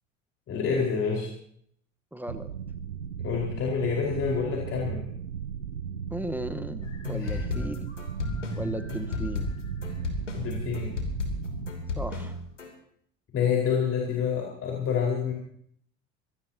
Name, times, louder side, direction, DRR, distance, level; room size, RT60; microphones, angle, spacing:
voice 1, 0.5-1.3 3.2-5.0 7.1-7.6 10.3-10.9 13.3-15.3, left 6 dB, 40° left, -2 dB, 4.6 m, -28 dB
voice 2, 2.1-2.5 6.1-7.9 8.6-9.5 12.0-12.3, right 1 dB, 5° right, 9 dB, 1.1 m, -35 dB
sound 1, 2.3-11.7, right 8 dB, 90° right, 0.6 m, -36 dB
sound 2, 6.8-12.7, left 4 dB, 85° left, 3.0 m, -34 dB
25.0 x 19.0 x 2.8 m, 0.65 s
figure-of-eight pair, 70°, 36 cm